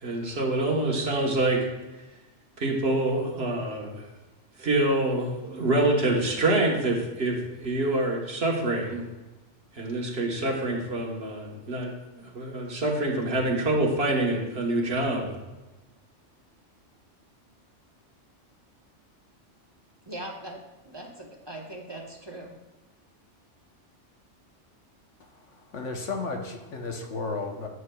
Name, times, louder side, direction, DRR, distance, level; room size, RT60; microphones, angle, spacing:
voice 1, 0.0-1.7 2.6-4.1 4.6-9.1 9.7-11.9 12.2-15.4, right 2 dB, 55° right, 0 dB, 1.4 m, -26 dB
voice 2, 20.1-22.6, right 1 dB, 25° right, 0 dB, 0.9 m, -40 dB
voice 3, 25.2-27.7, left 3 dB, 75° left, 3 dB, 1.3 m, -34 dB
9.7 x 8.0 x 2.3 m, 1.1 s
omnidirectional pair, 1.3 m